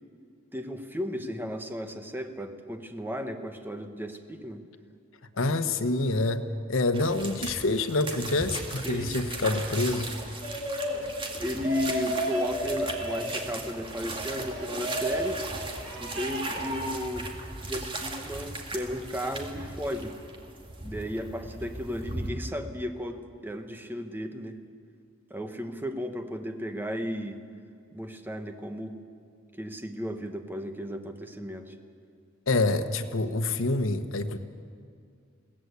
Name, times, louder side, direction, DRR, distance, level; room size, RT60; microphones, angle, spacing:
voice 1, 0.5-4.6 8.8-9.1 11.4-15.4 16.0-17.3 17.6-20.1 20.8-24.6 25.3-27.4 27.9-28.9 29.6-31.7, equal, 10° right, 6 dB, 1.3 m, -34 dB
voice 2, 5.3-6.4 6.7-10.2 32.5-34.4, left 2 dB, 90° left, 8 dB, 1.2 m, -27 dB
sound 1, 6.9-22.3, right 2 dB, 25° right, 2.2 m, -38 dB
sound 2, 10.4-11.0 11.6-13.4 14.0-15.3 15.7-16.8, equal, 70° right, 5.3 m, -33 dB
22.0 x 17.5 x 8.2 m, 2.3 s
head